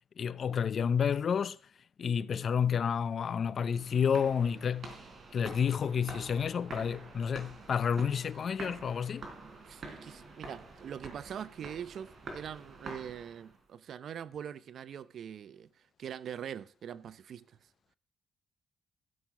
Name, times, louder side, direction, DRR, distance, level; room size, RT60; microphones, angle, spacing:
voice 1, 0.2-1.6 2.0-4.9 5.3-9.3, left 7 dB, 50° left, 0.6 m, -30 dB
sound 1, 3.6-13.6, right 3 dB, 45° right, 3.9 m, -47 dB
voice 2, 9.6-15.7 16.0-17.6, right 8 dB, 65° right, 0.7 m, -43 dB
15.5 x 6.4 x 5.9 m
cardioid pair, 90°, 0 cm